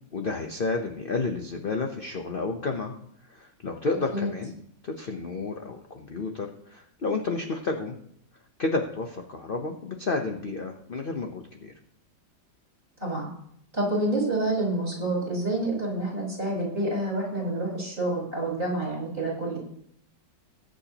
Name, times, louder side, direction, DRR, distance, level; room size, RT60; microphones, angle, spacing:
voice 1, 0.1-2.9 3.3-4.5 4.8-8.0 8.6-11.7, left 3 dB, 45° left, 4 dB, 0.8 m, -31 dB
voice 2, 13.7-19.6, right 1 dB, 30° right, -3 dB, 5.5 m, -28 dB
21.0 x 7.9 x 2.9 m, 0.69 s
omnidirectional pair, 2.0 m